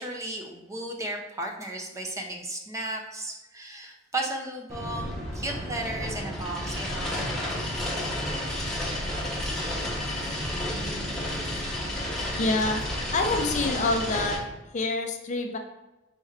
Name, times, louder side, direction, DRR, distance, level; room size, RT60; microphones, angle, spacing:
voice 1, 0.0-7.3 9.4-9.9 11.3-11.4 11.8-11.9, right 1 dB, 15° right, 1 dB, 0.5 m, -35 dB
sound 1, 4.7-14.4, left 1 dB, 5° left, 0.9 m, -31 dB
voice 2, 12.4-12.8 13.1-14.4 14.7-15.6, left 3 dB, 40° left, 4 dB, 0.4 m, -26 dB
4.4 x 4.3 x 2.4 m, 1.0 s
head